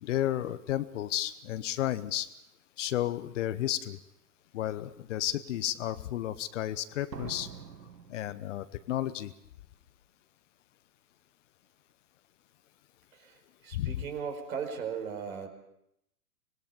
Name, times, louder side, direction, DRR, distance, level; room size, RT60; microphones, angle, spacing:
voice 1, 0.0-2.3 2.8-4.0 4.5-7.5 8.1-9.3 13.7-13.9, left 12 dB, 45° left, 14 dB, 1.0 m, -32 dB
Slam, 3.9-4.0 4.7-5.0 7.1-9.0 9.2-9.3, right 6 dB, 85° right, 1.4 m, -46 dB
voice 2, 13.1-15.5, right 6 dB, 60° right, 6 dB, 5.0 m, -37 dB
25.5 x 19.5 x 5.4 m, 0.79 s
figure-of-eight pair, 115°, 49 cm